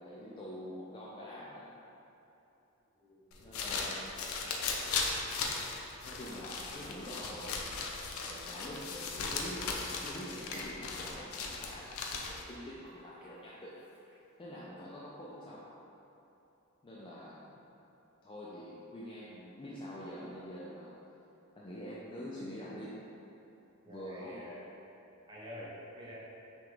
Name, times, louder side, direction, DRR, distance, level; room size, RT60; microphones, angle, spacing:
voice 1, 0.0-1.7 3.4-4.2 6.0-7.7 8.2-13.8 14.4-15.7 16.8-17.5 18.2-20.9 21.6-23.0 23.9-24.5, equal, 25° left, -7 dB, 0.4 m, -45 dB
voice 2, 3.0-3.7 23.8-24.7 25.3-26.2, equal, 20° right, -7 dB, 0.7 m, -48 dB
sound 1, 3.3-12.5, left 4 dB, 80° left, 0.5 m, -38 dB
Cat, 9.2-14.4, left 1 dB, 5° right, 1.0 m, -55 dB
5.9 x 2.4 x 3.5 m, 3.0 s
head